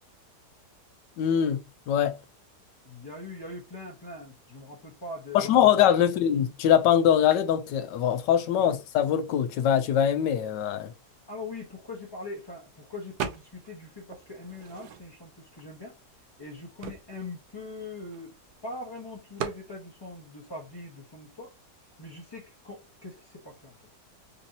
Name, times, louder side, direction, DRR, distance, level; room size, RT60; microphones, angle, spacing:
voice 1, 1.2-1.6 1.9-2.2 5.3-10.9, left 9 dB, 90° left, 1.3 m, -23 dB
voice 2, 2.8-5.7 6.0-6.1 8.5-8.8 11.3-16.0 16.4-18.3 18.6-21.5 22.0-23.7, left 2 dB, 20° left, 0.7 m, -42 dB
sound 1, 13.2-13.8 14.1-15.4 16.0-16.1 16.3-18.5 19.4-19.7, right 7 dB, 75° right, 1.2 m, -37 dB
4.2 x 2.8 x 2.6 m
omnidirectional pair, 1.8 m